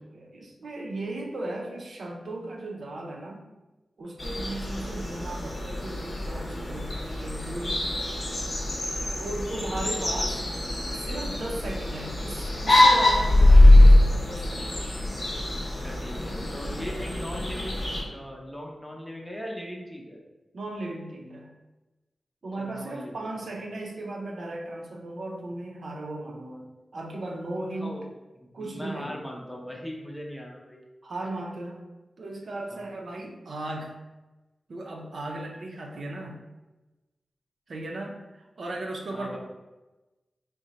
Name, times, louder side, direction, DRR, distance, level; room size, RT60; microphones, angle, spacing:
voice 1, 0.0-3.4 4.0-7.9 9.2-10.4 10.9-14.8 16.7-16.9 20.5-21.5 22.4-26.7 26.9-28.0 28.5-29.2 31.0-31.8 32.2-34.0 34.7-36.4 37.7-39.4, right 2 dB, 70° right, 0 dB, 0.5 m, -36 dB
sound 1, 4.2-18.0, left 1 dB, 60° left, 1.1 m, -22 dB
voice 2, 9.8-10.5 15.8-17.8 18.0-20.2 22.6-23.3 27.8-28.0 28.6-30.8 32.7-32.9 39.1-39.4, equal, 5° left, -1 dB, 0.6 m, -39 dB
3.7 x 2.1 x 3.9 m, 1.1 s
wide cardioid pair, 110°, 0 cm